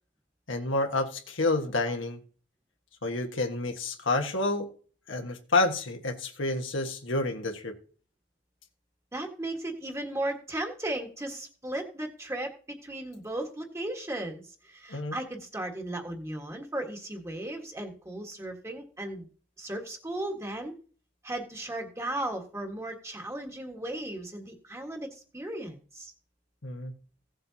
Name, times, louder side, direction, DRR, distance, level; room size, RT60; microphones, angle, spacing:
voice 1, 0.5-2.2 3.0-4.7 5.1-7.7 14.9-15.2 26.6-26.9, left 2 dB, 70° left, 4 dB, 1.4 m, -29 dB
voice 2, 9.1-19.3 19.6-20.7 21.2-25.1 25.3-26.1, right 1 dB, 15° right, 3 dB, 1.6 m, -36 dB
16.5 x 7.7 x 2.8 m, 0.41 s
head